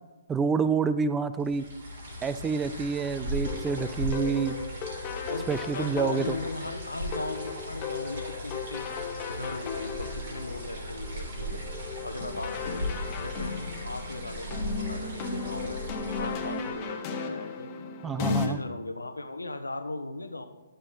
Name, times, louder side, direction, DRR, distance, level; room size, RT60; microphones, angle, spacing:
voice 1, 0.3-1.6 2.2-4.6 5.5-6.4 18.0-18.6, right 5 dB, 10° right, 13 dB, 0.4 m, -28 dB
sound 1, 1.4-16.8, equal, 50° right, 3.1 m, -38 dB
sound 2, 3.5-18.5, left 5 dB, 30° left, 1.1 m, -36 dB
voice 2, 5.3-8.9 9.3-11.6 12.0-12.9 13.2-17.7 18.2-20.5, left 2 dB, 85° left, 8 dB, 0.9 m, -38 dB
11.5 x 6.8 x 4.3 m, 1.2 s
figure-of-eight pair, 130°, 0 cm